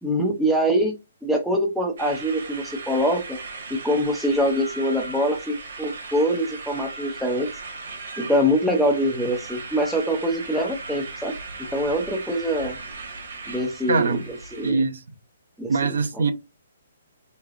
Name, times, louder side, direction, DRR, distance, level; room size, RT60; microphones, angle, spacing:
voice 1, 0.0-1.0 1.2-3.4 3.7-7.5 8.2-11.3 11.7-12.7 13.5-14.8 15.6-15.7, equal, ahead, 0.5 m, -24 dB
sound 1, 2.0-14.7, right 3 dB, 50° right, 1.2 m, -37 dB
voice 2, 13.9-14.2 14.6-15.0 15.7-16.3, right 4 dB, 75° right, 0.7 m, -22 dB
3.6 x 3.2 x 2.4 m
hypercardioid pair, 175°, 0 cm